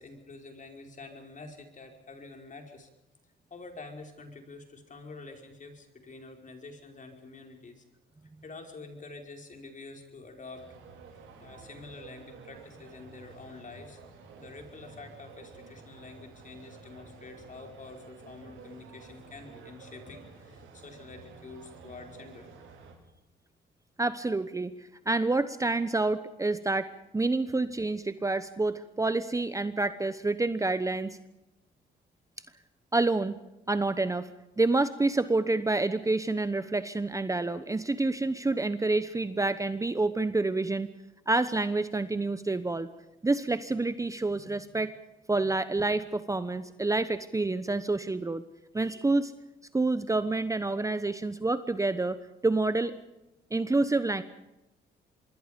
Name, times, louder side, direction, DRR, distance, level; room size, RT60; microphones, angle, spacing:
voice 1, 0.0-2.9 3.5-7.8 8.4-10.6 11.4-14.0 14.3-22.5, left 3 dB, 40° left, 3 dB, 5.3 m, -47 dB
sound 1, 10.5-22.9, right 4 dB, 85° right, 5.7 m, -51 dB
voice 2, 24.0-24.7 25.1-26.9 27.1-31.2 32.9-33.4 33.7-34.3 34.6-40.9 41.3-42.9 43.2-44.9 45.3-48.4 48.7-49.3 49.7-52.9 53.5-54.2, right 2 dB, 15° right, 12 dB, 1.0 m, -28 dB
26.5 x 22.0 x 5.3 m, 0.95 s
cardioid pair, 90°, 20 cm